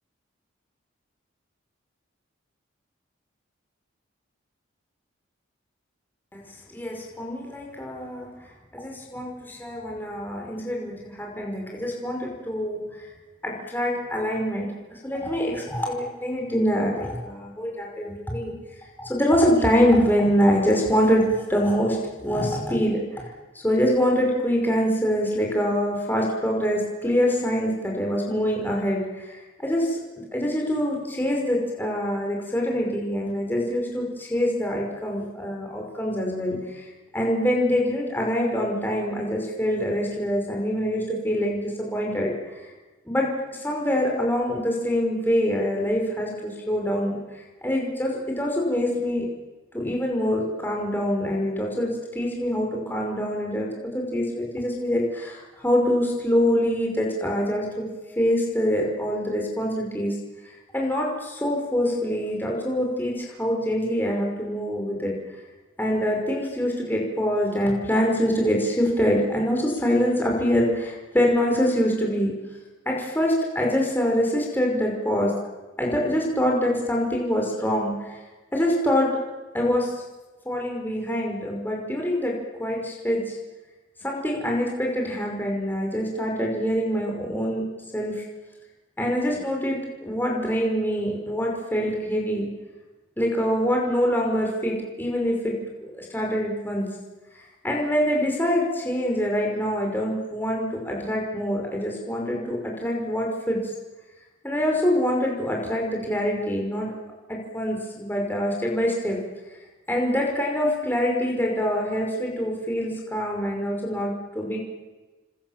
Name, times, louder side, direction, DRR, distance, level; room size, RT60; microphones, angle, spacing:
voice 1, 6.7-8.3 8.7-12.9 13.4-18.5 19.0-23.2 23.5-30.0 30.3-36.9 37.1-42.6 43.1-47.2 47.6-49.3 49.7-53.7 53.9-57.9 58.2-60.2 60.5-65.2 65.8-72.3 72.9-75.4 75.8-78.2 78.5-79.1 79.5-79.9 80.5-83.4 84.0-87.6 87.9-88.2 89.0-92.5 93.2-96.9 97.6-103.7 104.4-106.9 107.3-109.2 109.9-114.6, equal, 10° left, -1 dB, 5.2 m, -25 dB
29.5 x 26.0 x 7.4 m, 1.2 s
head